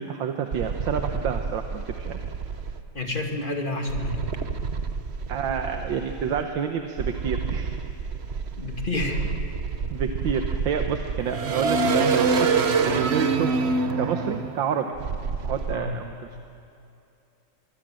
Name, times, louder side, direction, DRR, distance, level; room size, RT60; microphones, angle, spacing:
voice 1, 0.0-2.2 5.3-7.8 9.9-12.5 12.8-13.5 14.0-14.9 15.4-16.4, right 7 dB, 85° right, 5 dB, 1.8 m, -29 dB
sound 1, 0.5-2.8 3.9-6.4 7.0-15.7, right 4 dB, 45° right, 1.0 m, -27 dB
voice 2, 2.9-4.2 8.6-9.3 15.7-15.9, left 2 dB, 25° left, 2 dB, 2.3 m, -29 dB
24.0 x 23.0 x 7.6 m, 2.7 s
omnidirectional pair, 2.0 m